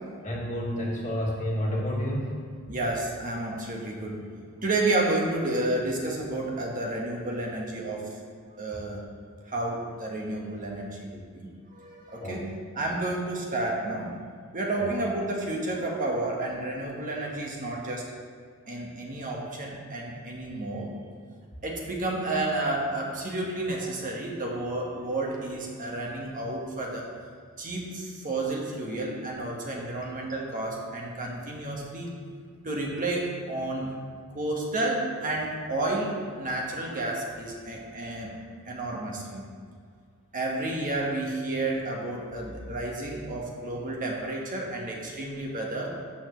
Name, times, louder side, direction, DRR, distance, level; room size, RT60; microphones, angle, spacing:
voice 1, 0.2-2.4 12.2-12.5 14.8-14.9, equal, 35° left, -4 dB, 1.8 m, -30 dB
voice 2, 2.7-4.3 4.5-8.1 8.6-9.0 9.5-12.4 12.7-14.1 14.5-18.0 18.7-20.9 21.6-27.1 27.6-32.1 32.6-33.9 34.3-38.4 38.6-39.4 40.3-45.9, right 2 dB, 40° right, -2 dB, 1.4 m, -31 dB
12.5 x 7.0 x 3.1 m, 2.1 s
head